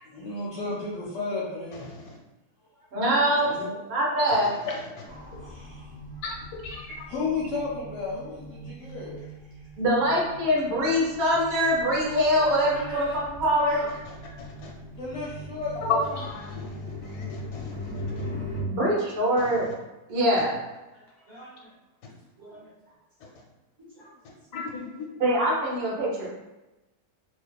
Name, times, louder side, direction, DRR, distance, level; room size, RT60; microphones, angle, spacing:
voice 1, 0.1-1.8 3.3-3.8 5.4-5.9 7.1-9.2 15.0-16.2, left 3 dB, 70° left, -7 dB, 0.7 m, -33 dB
voice 2, 2.9-3.5 3.9-4.5 9.8-13.8 18.6-19.7 20.1-20.6 25.2-26.3, equal, 55° right, -4 dB, 0.7 m, -23 dB
sound 1, 5.1-18.6, left 1 dB, 25° left, 0.3 m, -40 dB
voice 3, 6.6-7.0 14.4-14.7 16.2-16.7 17.3-17.7 19.4-19.5 24.5-24.7, left 4 dB, 85° left, -1 dB, 1.2 m, -37 dB
voice 4, 12.4-14.0 18.7-18.8 20.9-21.7 22.4-22.7 23.2-23.4 23.8-24.1 24.7-25.1 26.1-26.2, right 1 dB, 20° right, -9 dB, 0.6 m, -44 dB
2.6 x 2.3 x 2.2 m, 1.0 s
omnidirectional pair, 1.7 m